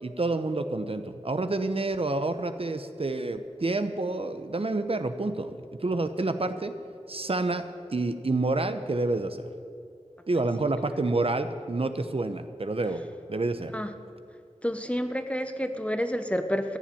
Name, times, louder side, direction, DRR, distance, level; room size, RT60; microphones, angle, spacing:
voice 1, 0.0-6.7 7.1-7.7 7.9-9.5 10.3-13.0 13.3-13.7, right 2 dB, 50° right, 9 dB, 0.8 m, -28 dB
voice 2, 14.6-16.8, equal, 10° left, 8 dB, 1.0 m, -29 dB
14.5 x 7.4 x 9.1 m, 2.3 s
wide cardioid pair, 45°, 12 cm